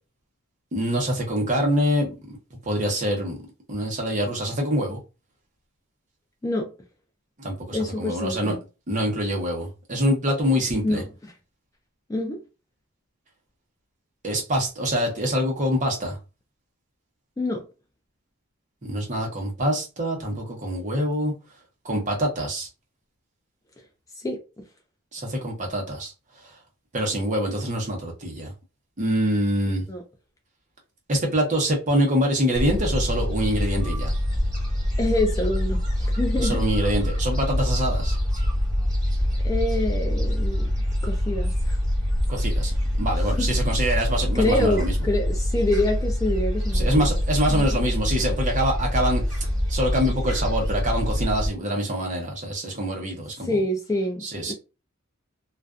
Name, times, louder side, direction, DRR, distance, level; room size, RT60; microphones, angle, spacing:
voice 1, 0.7-2.4 2.7-3.4 3.7-5.0 7.4-8.6 8.9-11.0 14.2-16.2 18.8-21.3 21.8-22.7 25.1-26.1 26.9-28.5 29.0-29.8 31.1-34.1 36.4-38.2 42.3-44.9 46.7-49.2 49.7-53.5 54.2-54.5, equal, 35° right, 0.8 m, -25 dB
voice 2, 7.7-8.6 10.8-11.1 12.1-12.4 17.4-17.6 24.2-24.4 29.9-30.0 35.0-36.6 39.4-40.7 41.0-41.8 43.2-43.5 44.3-47.2 47.5-47.8 53.4-54.5, left 1 dB, 15° left, 0.3 m, -26 dB
Gull seagull, 32.6-51.5, left 1 dB, 15° right, 1.4 m, -25 dB
2.4 x 2.3 x 2.3 m
head